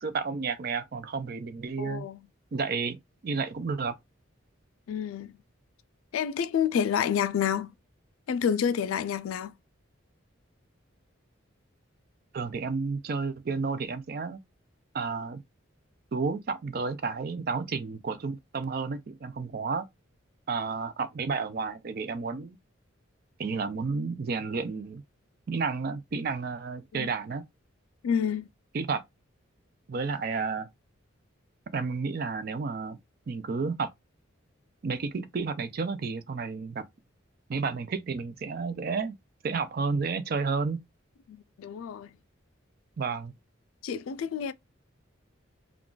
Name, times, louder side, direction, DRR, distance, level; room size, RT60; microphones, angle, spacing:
voice 1, 0.0-2.1 2.5-3.0 3.2-4.0 12.3-14.4 14.9-15.4 16.1-19.9 20.5-22.6 23.4-25.0 25.5-27.4 28.7-29.0 29.9-30.7 31.7-33.0 33.3-33.9 34.8-36.9 37.5-39.1 39.4-40.8 43.0-43.3, right 4 dB, 50° right, 0.4 m, -31 dB
voice 2, 1.8-2.2 4.9-5.3 6.1-7.7 8.3-9.5 26.9-27.1 28.0-28.5 41.3-42.1 43.8-44.5, left 8 dB, 85° left, 0.3 m, -29 dB
2.4 x 2.3 x 3.7 m
head